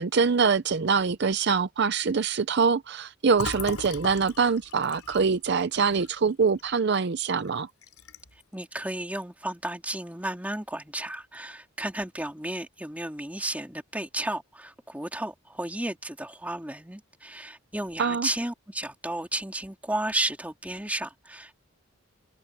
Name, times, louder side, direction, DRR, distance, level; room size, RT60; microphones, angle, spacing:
voice 1, 0.0-7.7 18.0-18.3, right 5 dB, 50° right, 0.5 m, -24 dB
Fill (with liquid), 3.3-7.0 7.3-7.5 7.8-8.4, left 3 dB, 85° left, 3.4 m, -38 dB
voice 2, 8.5-21.5, right 1 dB, 5° right, 2.5 m, -33 dB
head